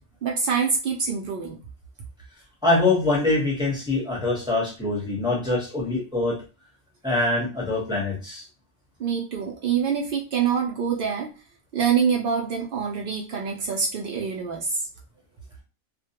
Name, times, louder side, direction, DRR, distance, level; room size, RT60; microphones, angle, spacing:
voice 1, 0.2-1.6 9.0-11.3 11.7-14.8, right 6 dB, 65° right, 0 dB, 0.5 m, -25 dB
voice 2, 2.6-6.4 7.0-8.4, left 2 dB, 5° right, -4 dB, 0.7 m, -24 dB
2.3 x 2.1 x 2.8 m, 0.33 s
omnidirectional pair, 1.4 m